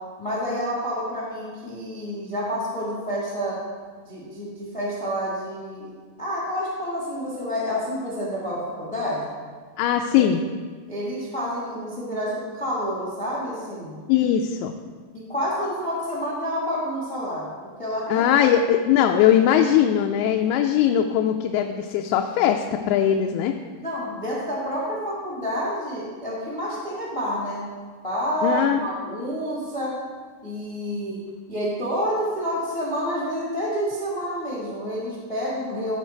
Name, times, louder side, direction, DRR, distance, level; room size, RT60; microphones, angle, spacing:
voice 1, 0.2-3.6 4.0-5.9 6.2-9.3 10.1-10.3 10.9-13.9 15.1-17.5 17.8-18.2 23.8-27.7 28.0-30.0 30.4-31.2 31.5-36.0, equal, 20° left, -6 dB, 1.0 m, -28 dB
voice 2, 9.8-10.4 14.1-14.7 18.1-23.5 28.4-28.8, left 9 dB, 85° left, 4 dB, 2.4 m, -20 dB
14.5 x 5.0 x 4.5 m, 1.5 s
omnidirectional pair, 4.6 m